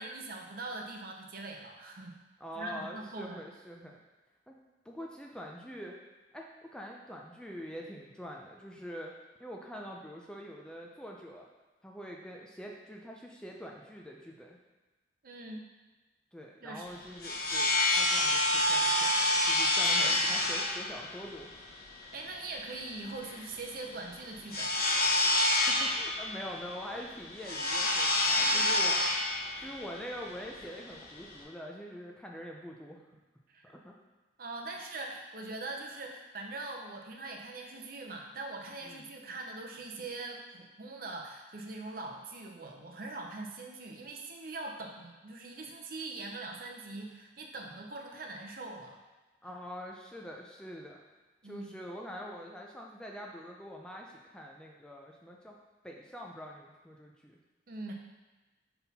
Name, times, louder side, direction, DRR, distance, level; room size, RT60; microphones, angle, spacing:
voice 1, 0.0-2.2 2.5-3.4 15.2-15.7 16.6-16.9 19.8-20.5 22.1-24.8 28.2-28.7 33.5-33.7 34.4-49.0 51.4-51.7 57.7-57.9, right 2 dB, 50° right, 2 dB, 0.7 m, -42 dB
voice 2, 2.4-4.0 4.5-4.6 4.9-6.0 6.3-9.1 9.4-11.5 11.8-14.6 16.3-21.5 25.7-29.0 29.6-33.0 33.6-34.0 38.8-39.0 49.4-51.0 51.4-55.6 55.8-57.4, equal, 5° left, -1 dB, 0.4 m, -45 dB
sound 1, 16.9-31.4, left 1 dB, 50° left, 1.0 m, -29 dB
5.6 x 4.1 x 4.1 m, 1.2 s
head